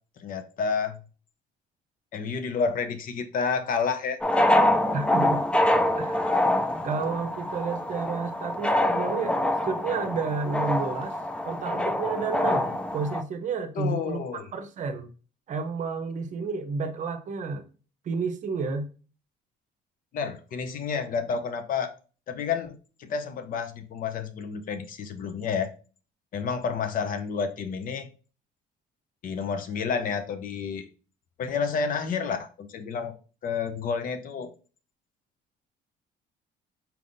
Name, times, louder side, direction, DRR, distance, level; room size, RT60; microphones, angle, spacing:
voice 1, 0.2-1.0 2.1-4.2 13.8-14.5 20.1-21.9 22.3-22.7 23.0-25.7 26.3-28.1 29.2-30.9 31.4-33.1 33.4-34.5, left 5 dB, 55° left, 0.6 m, -30 dB
sound 1, 4.2-13.2, left 1 dB, 5° left, 0.3 m, -25 dB
voice 2, 4.9-5.4 6.0-6.3 6.8-9.4 9.6-11.2 11.4-15.1 15.5-17.7 18.0-18.9, right 4 dB, 45° right, 0.7 m, -31 dB
4.4 x 3.5 x 2.6 m
cardioid pair, 110°, 17 cm